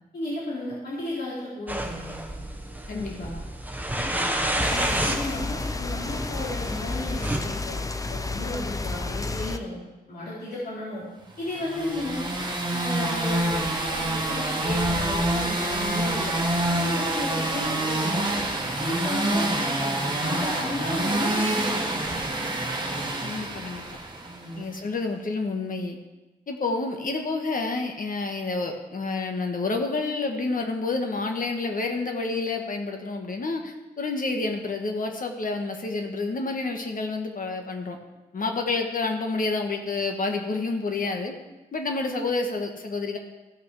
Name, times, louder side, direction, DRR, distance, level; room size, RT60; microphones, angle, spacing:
voice 1, 0.1-2.2 2.9-3.3 3.9-7.8 8.1-9.8 10.1-11.1 11.4-12.3 12.7-16.4 16.7-18.4 18.8-22.5 24.2-24.7, left 2 dB, 80° left, -8 dB, 3.3 m, -34 dB
sound 1, 1.7-7.4, right 1 dB, 10° right, 1.0 m, -30 dB
voice 2, 2.9-3.3 23.2-24.0 24.6-26.0 26.5-38.0 38.3-41.3 41.7-43.2, left 3 dB, 55° left, 3 dB, 1.5 m, -29 dB
sound 2, 4.6-9.6, left 3 dB, 20° left, 0.6 m, -31 dB
sound 3, 11.5-24.5, right 1 dB, 25° right, 1.5 m, -27 dB
15.5 x 6.0 x 4.8 m, 1.1 s
wide cardioid pair, 100°, 16 cm